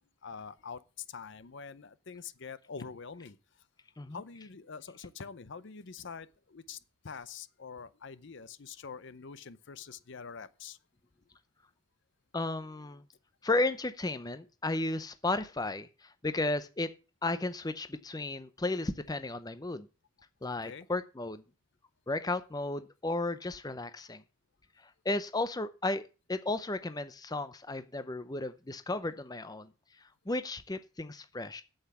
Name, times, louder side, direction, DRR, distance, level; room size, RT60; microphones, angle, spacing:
voice 1, 0.2-0.8 1.1-3.4 4.1-6.8 7.0-10.8 20.6-20.9, left 5 dB, 55° left, 0.6 m, -45 dB
voice 2, 12.3-13.0 13.4-16.9 17.2-19.9 20.4-21.4 22.1-24.2 25.0-26.0 26.3-29.7 30.3-31.6, left 2 dB, 20° left, 0.6 m, -34 dB
8.3 x 8.1 x 7.0 m
head